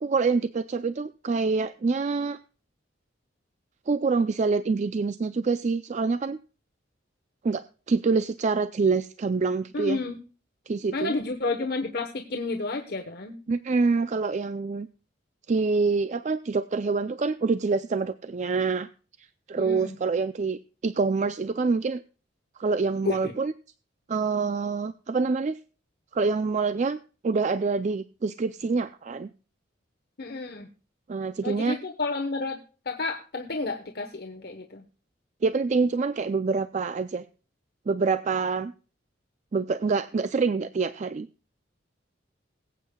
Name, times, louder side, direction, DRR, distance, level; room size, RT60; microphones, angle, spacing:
voice 1, 0.0-2.4 3.9-6.4 7.4-10.0 10.7-11.1 13.5-14.9 15.5-18.9 19.5-22.0 22.6-23.5 24.1-25.6 26.1-27.0 27.2-29.3 31.1-31.8 35.4-37.2 37.9-38.7 39.5-41.3, right 4 dB, 40° right, 12 dB, 0.4 m, -26 dB
voice 2, 9.7-10.2 10.9-13.4 19.6-20.0 23.0-23.3 30.2-30.7 31.4-32.6 32.9-34.8, left 3 dB, 55° left, 3 dB, 1.1 m, -31 dB
22.0 x 8.3 x 2.3 m, 0.37 s
head